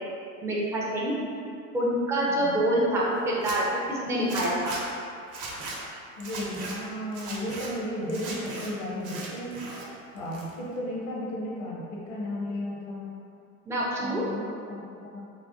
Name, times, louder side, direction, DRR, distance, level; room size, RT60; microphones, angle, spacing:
voice 1, 0.4-1.1 1.7-4.7 13.7-14.2, right 1 dB, 5° right, -6 dB, 0.5 m, -26 dB
voice 2, 2.3-2.6 6.2-9.8 10.1-13.1 14.0-15.3, left 1 dB, 70° left, -5 dB, 1.0 m, -34 dB
Zipper (clothing), 3.3-3.6 4.3-4.8 5.3-5.8 6.2-6.7 7.1-7.7 8.1-8.7 9.0-9.8 10.2-10.8, right 3 dB, 45° right, 0.8 m, -38 dB
3.2 x 2.1 x 2.7 m, 2.5 s
hypercardioid pair, 80°, 43 cm